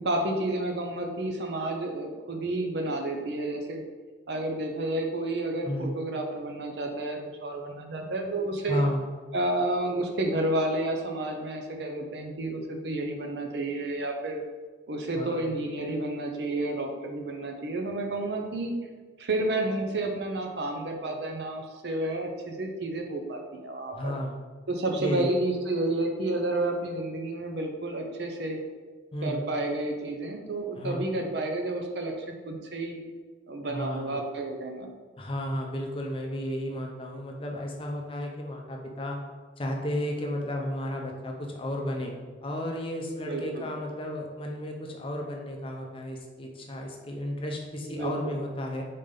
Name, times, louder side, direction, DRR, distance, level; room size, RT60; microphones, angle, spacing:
voice 1, 0.0-3.8 4.3-8.8 9.3-14.4 14.9-18.7 19.2-24.1 24.7-28.6 29.2-33.0 33.5-34.9 43.2-43.7 47.8-48.4, right 2 dB, 60° right, 3 dB, 0.6 m, -30 dB
voice 2, 8.7-9.0 15.1-15.4 23.9-24.4 25.0-25.3 29.1-29.4 30.8-31.1 33.7-34.2 35.2-39.2 39.6-42.1 42.4-48.8, left 1 dB, 30° left, 1 dB, 0.5 m, -33 dB
4.1 x 3.4 x 3.7 m, 1.4 s
head